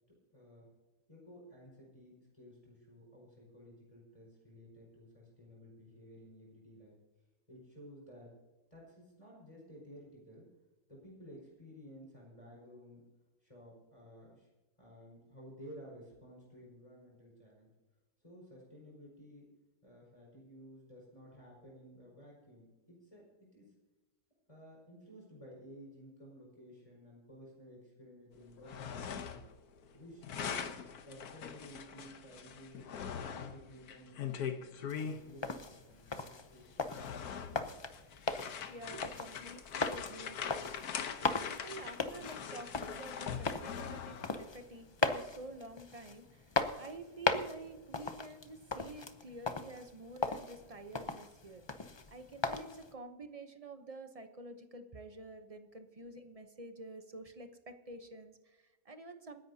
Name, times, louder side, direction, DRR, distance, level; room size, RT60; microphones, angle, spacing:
voice 1, 0.3-0.7 1.1-7.0 7.5-8.3 8.7-10.5 10.9-13.1 13.4-14.5 14.8-17.7 18.2-19.4 19.8-23.7 24.5-29.5 29.9-30.7 31.0-37.0 37.4-37.8 55.9-56.0, equal, 20° left, -3 dB, 5.1 m, -54 dB
sound 1, 28.5-29.6 29.8-35.2 36.1-36.2 36.7-44.5, left 7 dB, 85° left, 1.5 m, -42 dB
sound 2, 34.9-52.9, left 3 dB, 35° left, 0.4 m, -39 dB
voice 2, 38.7-40.7 41.2-51.7 52.1-59.4, right 2 dB, 30° right, 7 dB, 0.7 m, -49 dB
27.5 x 10.5 x 2.8 m, 1.1 s
omnidirectional pair, 1.6 m